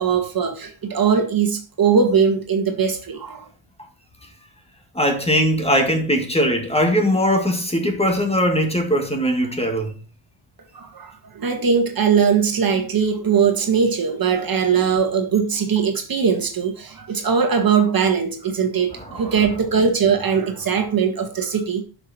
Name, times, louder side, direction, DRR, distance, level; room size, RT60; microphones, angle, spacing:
voice 1, 0.0-3.4 10.7-21.8, right 6 dB, 45° right, 1.7 m, -20 dB
voice 2, 4.9-9.9 19.0-19.3, equal, 10° left, 2.0 m, -20 dB
11.5 x 6.1 x 4.3 m
cardioid pair, 135°, 50 cm